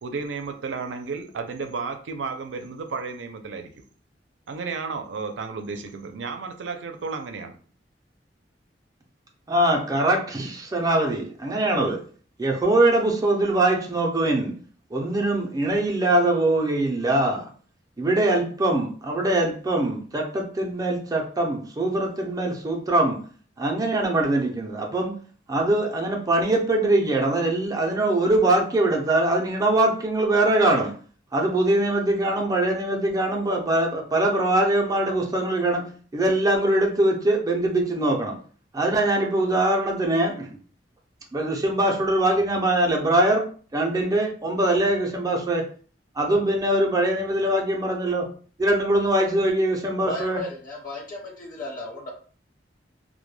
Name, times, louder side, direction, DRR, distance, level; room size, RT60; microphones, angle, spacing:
voice 1, 0.0-3.7 4.5-7.5, right 4 dB, 85° right, 6 dB, 0.4 m, -33 dB
voice 2, 9.5-12.0 12.4-14.6 14.9-17.5 18.0-23.2 23.6-25.1 25.5-31.0 31.3-38.4 38.7-40.6 41.3-45.7 46.2-48.3 48.6-50.4, right 1 dB, 20° right, 1 dB, 0.4 m, -22 dB
voice 3, 50.0-52.1, left 2 dB, 50° left, -1 dB, 0.8 m, -34 dB
2.1 x 2.1 x 3.1 m, 0.42 s
head